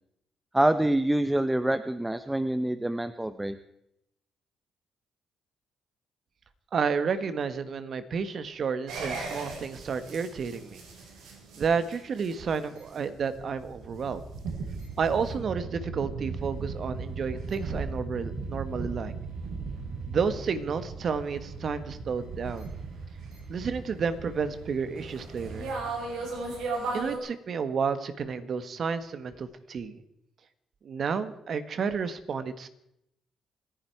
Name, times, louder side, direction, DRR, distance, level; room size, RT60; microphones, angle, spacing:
voice 1, 0.5-3.6, right 1 dB, 10° right, 12 dB, 0.7 m, -26 dB
voice 2, 6.7-10.8 11.6-14.2 15.0-19.1 20.0-22.6 23.5-25.7 26.9-30.0 30.8-32.7, right 6 dB, 55° right, 12 dB, 1.5 m, -31 dB
sound 1, 8.9-27.2, right 3 dB, 85° right, 5.3 m, -37 dB
27.5 x 10.5 x 4.6 m, 0.79 s
cardioid pair, 90°, 0 cm